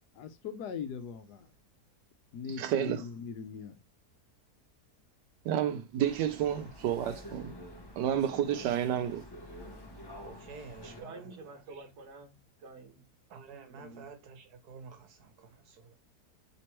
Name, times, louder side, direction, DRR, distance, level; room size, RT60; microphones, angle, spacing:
voice 1, 0.1-1.5 2.3-3.7, left 6 dB, 75° left, 1.2 m, -40 dB
voice 2, 2.6-3.0 5.4-7.5 8.0-9.2, right 10 dB, 85° right, 1.2 m, -30 dB
sound 1, 6.0-11.0, left 1 dB, 25° left, 0.5 m, -48 dB
voice 3, 10.2-11.9 13.3-15.9, right 5 dB, 70° right, 1.4 m, -50 dB
voice 4, 11.0-13.0 13.7-14.1, right 3 dB, 45° right, 1.4 m, -49 dB
3.4 x 3.0 x 4.4 m
omnidirectional pair, 1.8 m